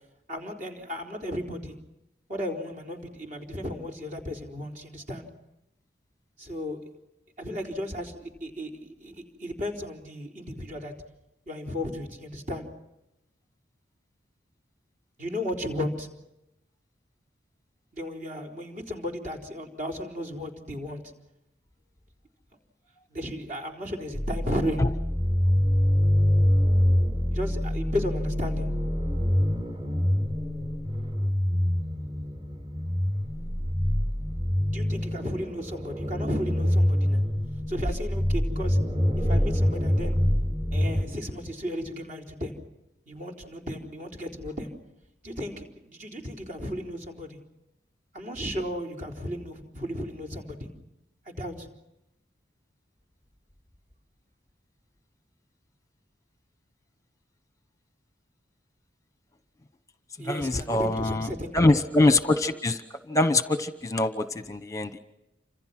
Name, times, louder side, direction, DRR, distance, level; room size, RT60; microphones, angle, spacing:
voice 1, 0.3-1.8 2.3-5.3 6.4-6.8 7.4-10.9 11.5-12.7 15.2-16.1 17.9-21.0 23.1-24.9 27.3-28.7 34.7-37.2 37.7-38.8 39.2-40.2 40.7-42.5 43.1-44.7 45.2-47.4 48.1-50.7 51.3-51.7 60.2-61.8, equal, 45° right, 1 dB, 4.1 m, -34 dB
sound 1, 24.1-41.0, equal, 30° right, 5.9 m, -25 dB
voice 2, 60.2-61.3 61.5-62.8 63.1-65.0, left 2 dB, 20° left, 10 dB, 0.9 m, -23 dB
29.0 x 26.5 x 6.0 m, 0.90 s
head